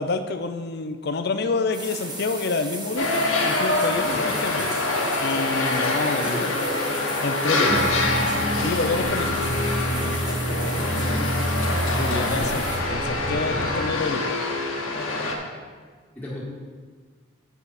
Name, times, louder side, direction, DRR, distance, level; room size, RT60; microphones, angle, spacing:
voice 1, 0.0-4.7 5.2-6.5 7.2-7.7 8.5-9.4 9.9-10.4 12.0-14.3, left 3 dB, 50° left, 8 dB, 0.5 m, -28 dB
sound 1, 1.7-12.8, right 2 dB, 20° right, 1.2 m, -36 dB
sound 2, 3.0-15.4, left 2 dB, 80° left, 1.1 m, -25 dB
voice 2, 6.0-6.8 7.4-8.4 10.4-10.7 12.3-12.6 16.2-16.4, equal, 10° left, -7 dB, 1.9 m, -35 dB
sound 3, 7.7-13.8, right 1 dB, 35° right, 0.5 m, -29 dB
7.9 x 7.0 x 4.2 m, 1.6 s
head